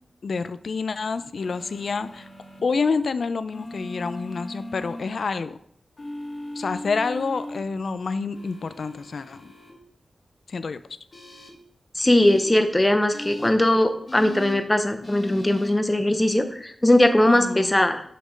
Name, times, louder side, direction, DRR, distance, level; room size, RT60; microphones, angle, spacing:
voice 1, 0.2-2.3 2.6-5.6 6.6-9.5 10.5-10.8 13.3-13.4 17.3-17.8, left 4 dB, 65° left, 13 dB, 0.4 m, -28 dB
sound 1, 1.4-2.6 3.5-5.0 6.0-7.6 8.3-9.7 11.1-11.5 12.2-12.4 13.1-13.5 14.1-14.5 15.0-15.7, left 1 dB, 35° left, 1.3 m, -38 dB
voice 2, 12.0-18.0, left 1 dB, 15° left, 8 dB, 0.6 m, -20 dB
5.9 x 5.1 x 5.0 m, 0.66 s
wide cardioid pair, 145°, 0 cm